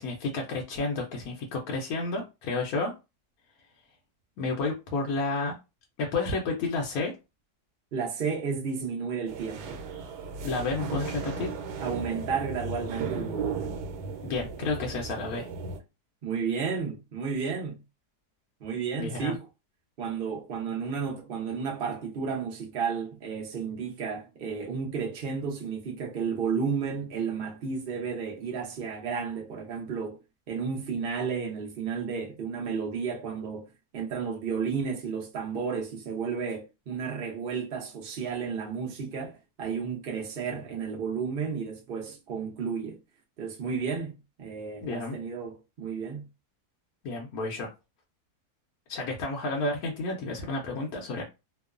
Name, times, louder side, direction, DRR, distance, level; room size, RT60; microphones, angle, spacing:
voice 1, 0.0-2.9 4.4-5.5 6.0-7.1 10.4-11.5 14.2-15.5 19.0-19.3 44.8-45.2 47.0-47.7 48.9-51.2, left 3 dB, 70° left, 1.0 m, -31 dB
voice 2, 7.9-9.9 11.8-13.8 16.2-17.8 18.6-19.5 20.0-30.2 30.5-43.0 43.4-46.2, right 6 dB, 50° right, 0.7 m, -32 dB
sound 1, 9.3-15.8, right 4 dB, 85° right, 1.2 m, -36 dB
2.9 x 2.0 x 2.4 m
omnidirectional pair, 1.7 m